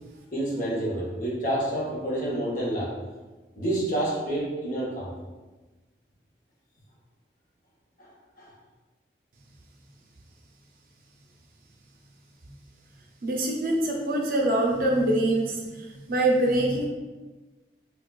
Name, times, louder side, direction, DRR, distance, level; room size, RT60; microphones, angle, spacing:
voice 1, 0.3-3.0 3.5-5.1 8.0-8.1 8.4-8.5, right 1 dB, 45° left, -5 dB, 0.9 m, -28 dB
voice 2, 13.2-16.9, right 1 dB, 50° right, 0 dB, 0.5 m, -24 dB
4.7 x 2.3 x 2.3 m, 1.2 s
head